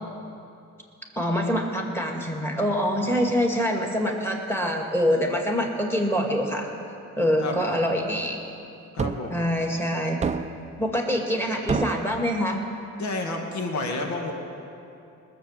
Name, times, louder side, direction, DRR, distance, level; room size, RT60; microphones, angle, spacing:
voice 1, 1.2-6.7 7.2-8.4 9.3-10.2 10.8-12.6, equal, 10° left, 1 dB, 2.2 m, -25 dB
voice 2, 8.9-9.5 13.0-14.3, left 2 dB, 70° left, 2 dB, 2.0 m, -30 dB
sound 1, 9.0-9.3 10.2-10.7 11.7-12.2, right 5 dB, 25° right, 0.5 m, -28 dB
19.0 x 7.1 x 7.5 m, 2.7 s
cardioid pair, 90°, 30 cm